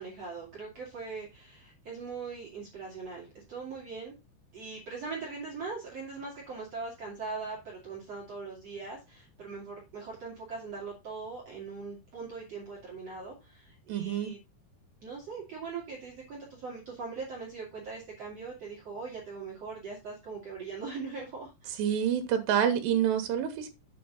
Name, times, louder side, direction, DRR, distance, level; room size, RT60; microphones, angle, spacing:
voice 1, 0.0-4.1 4.5-14.4 15.0-21.8, right 4 dB, 45° right, 2.8 m, -41 dB
voice 2, 13.9-14.3 21.8-23.7, right 9 dB, 75° right, 3.4 m, -27 dB
8.5 x 6.5 x 4.0 m
omnidirectional pair, 5.1 m